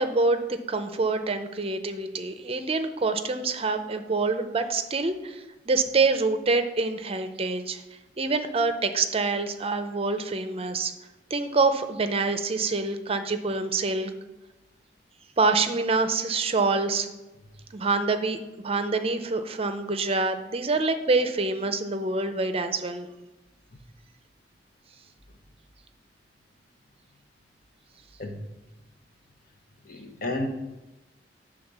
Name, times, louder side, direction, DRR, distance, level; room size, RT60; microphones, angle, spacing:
voice 1, 0.0-7.8 8.2-10.9 11.3-14.1 15.4-17.1 17.7-18.4 18.6-23.1, right 3 dB, 35° right, 8 dB, 0.6 m, -26 dB
voice 2, 29.8-30.5, left 2 dB, 55° left, 5 dB, 1.1 m, -32 dB
8.9 x 3.7 x 6.6 m, 1.0 s
head